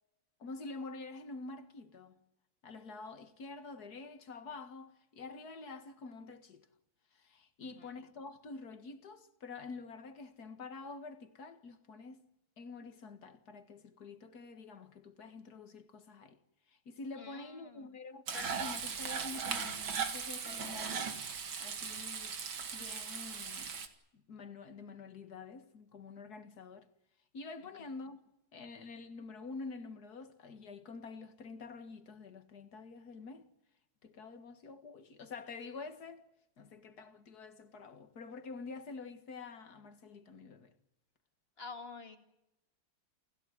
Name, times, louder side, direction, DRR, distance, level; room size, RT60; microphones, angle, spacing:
voice 1, 0.4-2.2 2.6-6.7 7.1-12.3 12.6-16.4 16.7-23.8 24.1-26.9 27.3-28.2 28.5-33.5 34.0-36.3 36.6-40.7, left 4 dB, 55° left, 2.2 m, -48 dB
voice 2, 7.6-7.9 17.2-17.9 27.6-27.7 41.6-42.2, left 4 dB, 30° left, 2.6 m, -49 dB
Frying (food), 18.3-23.9, right 6 dB, 85° right, 2.7 m, -38 dB
29.5 x 16.0 x 9.5 m
omnidirectional pair, 2.1 m